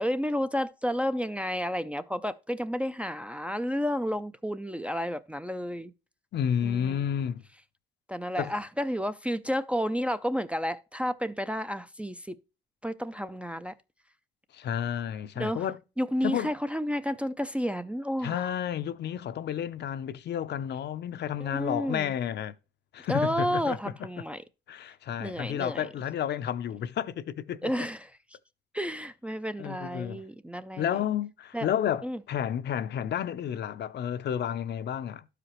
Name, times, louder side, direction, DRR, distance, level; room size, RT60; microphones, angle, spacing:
voice 1, 0.0-5.9 6.6-7.0 8.1-12.4 12.8-13.7 15.4-15.7 16.0-18.5 21.4-22.1 23.1-24.4 25.2-25.9 27.6-28.1 28.7-30.9 31.5-31.7 32.0-32.2, equal, 5° right, 0.4 m, -31 dB
voice 2, 6.3-7.4 8.4-8.5 14.5-15.8 16.2-16.5 18.2-22.5 22.9-23.8 24.2-24.3 24.7-27.7 29.6-30.2 30.8-35.3, left 9 dB, 60° left, 0.6 m, -31 dB
12.0 x 5.0 x 3.0 m
cardioid pair, 90°, 20 cm